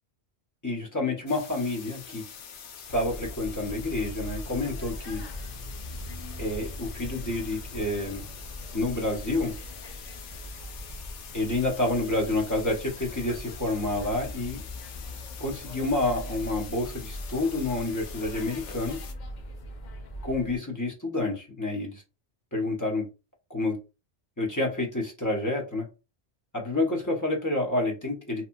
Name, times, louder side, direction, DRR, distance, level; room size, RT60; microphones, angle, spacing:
voice 1, 0.6-2.2 2.9-5.2 6.4-8.2 8.7-9.5 11.3-14.6 15.4-19.0 20.2-22.0 22.5-23.1 23.5-23.8 24.4-25.9 26.5-28.5, left 2 dB, 20° left, 0.6 m, -29 dB
sound 1, 1.3-19.1, left 7 dB, 90° left, 0.9 m, -45 dB
sound 2, 2.9-20.6, left 1 dB, 55° left, 0.5 m, -40 dB
2.9 x 2.3 x 2.5 m
omnidirectional pair, 1.2 m